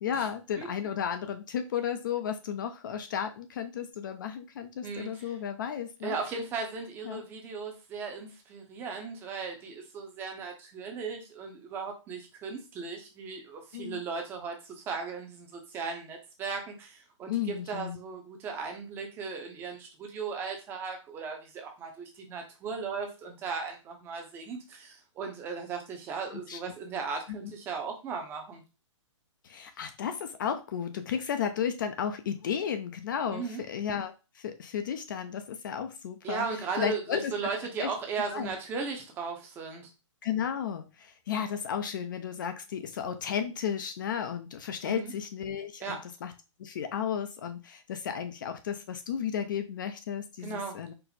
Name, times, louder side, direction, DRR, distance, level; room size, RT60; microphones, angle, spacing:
voice 1, 0.0-6.2 7.0-7.2 13.7-14.0 17.3-18.0 26.3-26.6 29.4-36.5 36.8-37.3 37.8-37.9 38.3-38.5 40.2-46.3 46.6-50.9, left 8 dB, 40° left, 9 dB, 0.4 m, -33 dB
voice 2, 4.8-5.4 6.0-28.6 33.3-33.6 36.2-39.9 44.8-45.1 45.8-46.0 50.4-50.8, right 5 dB, 15° right, 3 dB, 0.6 m, -37 dB
4.4 x 2.0 x 4.0 m, 0.29 s
hypercardioid pair, 160°, 17 cm